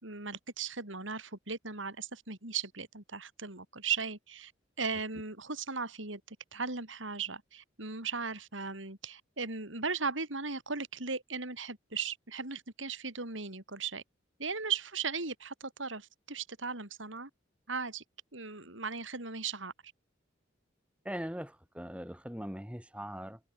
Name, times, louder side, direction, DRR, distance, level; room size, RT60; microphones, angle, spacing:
voice 1, 0.0-4.5 4.8-14.0 14.4-17.3 17.7-18.0 18.3-19.7, right 5 dB, 80° right, 5.2 m, -37 dB
voice 2, 21.1-23.4, equal, 5° right, 3.9 m, -40 dB
head